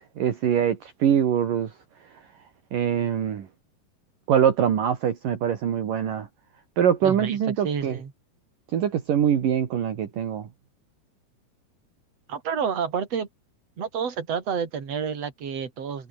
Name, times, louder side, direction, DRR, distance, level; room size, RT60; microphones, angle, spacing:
voice 1, 0.2-1.7 2.7-3.5 4.3-6.3 6.8-8.0 8.7-10.5, right 9 dB, 60° right, 3.7 m, -23 dB
voice 2, 7.0-7.4 7.6-8.1 12.3-13.3 13.8-16.1, right 7 dB, 40° right, 4.4 m, -29 dB
omnidirectional pair, 4.5 m